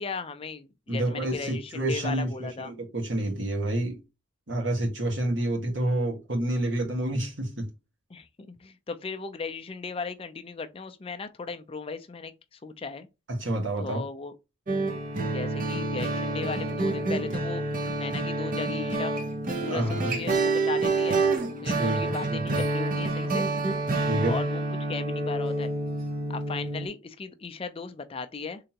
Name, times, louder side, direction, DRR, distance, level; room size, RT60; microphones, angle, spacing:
voice 1, 0.0-2.7 8.1-13.1 13.8-14.3 15.3-17.6 18.0-19.1 19.6-21.2 21.6-23.4 24.3-25.7 26.3-28.6, left 4 dB, 30° left, 0.4 m, -37 dB
voice 2, 0.9-4.0 4.5-7.7 13.3-14.0 19.7-20.2 21.6-22.6 24.0-24.4, right 1 dB, 70° right, 1.7 m, -29 dB
sound 1, 14.7-26.9, right 2 dB, 45° right, 0.7 m, -28 dB
3.8 x 3.3 x 2.9 m
head